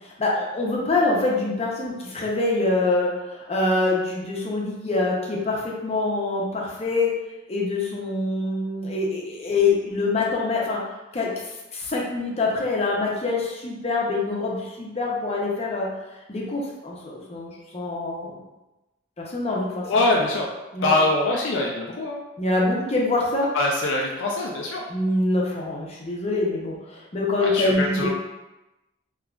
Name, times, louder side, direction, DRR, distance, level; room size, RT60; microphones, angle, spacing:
voice 1, 0.0-7.2 7.5-10.8 11.1-15.9 16.3-18.4 19.2-19.9 20.7-21.0 22.4-23.5 24.9-28.1, left 2 dB, 35° left, -3 dB, 0.7 m, -25 dB
voice 2, 19.8-20.5 20.8-22.2 23.5-24.8 27.4-28.1, left 2 dB, 70° left, -2 dB, 0.4 m, -23 dB
3.6 x 2.9 x 2.3 m, 1.0 s
head